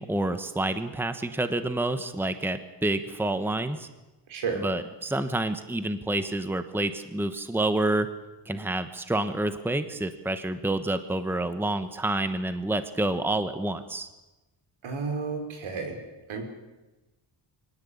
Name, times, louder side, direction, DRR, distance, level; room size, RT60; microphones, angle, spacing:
voice 1, 0.0-3.9 4.6-8.1 8.5-14.1, right 2 dB, 5° right, 10 dB, 1.2 m, -28 dB
voice 2, 4.3-4.7 14.8-16.0 16.3-16.4, right 5 dB, 80° right, 4 dB, 5.6 m, -31 dB
24.0 x 18.5 x 8.7 m, 1.1 s
wide cardioid pair, 140°, 47 cm